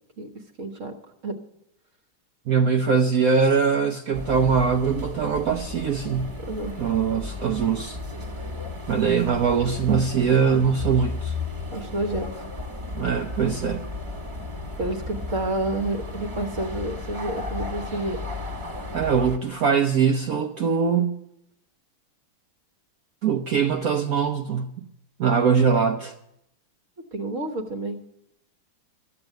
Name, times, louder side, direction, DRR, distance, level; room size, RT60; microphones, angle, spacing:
voice 1, 0.6-0.9 1.2-1.4 6.5-6.7 11.7-12.4 14.8-18.2 27.0-28.0, right 2 dB, 45° right, 1.3 m, -29 dB
voice 2, 2.5-6.3 6.8-8.0 8.9-11.4 12.9-13.8 18.9-21.2 23.2-24.7 25.2-26.1, right 6 dB, 70° right, 0.8 m, -22 dB
sound 1, 4.1-19.4, left 3 dB, 25° right, 1.7 m, -34 dB
13.5 x 7.8 x 8.9 m
omnidirectional pair, 2.3 m